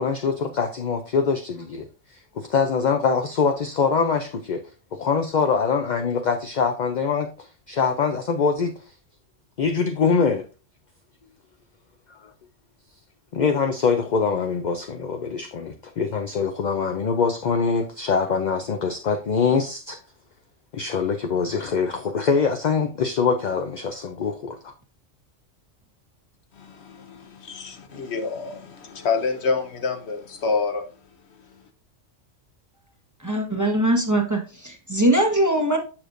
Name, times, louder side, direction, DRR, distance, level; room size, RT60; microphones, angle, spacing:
voice 1, 0.0-1.9 2.4-4.6 4.9-8.7 9.6-10.4 12.2-12.3 13.3-20.0 20.7-24.7, left 5 dB, 50° left, 0.6 m, -23 dB
voice 2, 26.5-30.9 31.3-31.7, left 4 dB, 65° left, 1.1 m, -28 dB
voice 3, 33.2-35.8, right 1 dB, 15° right, 1.0 m, -21 dB
7.1 x 6.6 x 2.6 m
omnidirectional pair, 1.2 m